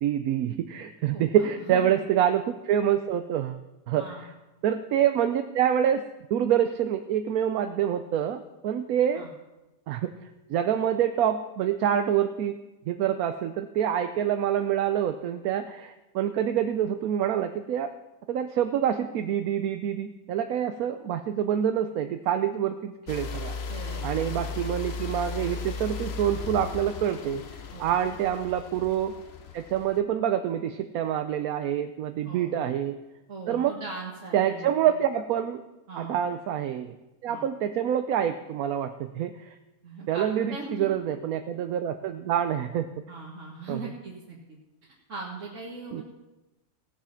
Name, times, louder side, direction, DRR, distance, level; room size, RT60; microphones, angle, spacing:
voice 1, 0.0-3.6 3.9-4.0 4.6-6.0 6.3-9.2 9.9-10.1 10.5-12.6 12.9-17.9 18.3-23.6 24.0-27.4 27.8-29.1 29.5-32.9 33.5-33.7 34.3-35.6 35.9-36.9 37.2-39.5 40.1-42.9 43.7-43.8 45.9-46.0, right 10 dB, 80° right, 8 dB, 1.1 m, -26 dB
voice 2, 1.1-2.0 3.9-4.2 9.1-9.3 23.7-24.3 27.7-27.9 32.2-32.5 33.3-34.9 35.9-36.2 37.3-37.4 39.8-40.9 43.1-46.0, right 3 dB, 60° right, -4 dB, 2.0 m, -40 dB
sound 1, 23.1-30.0, left 5 dB, 55° left, 1.0 m, -36 dB
17.0 x 7.3 x 5.7 m, 1.0 s
omnidirectional pair, 1.5 m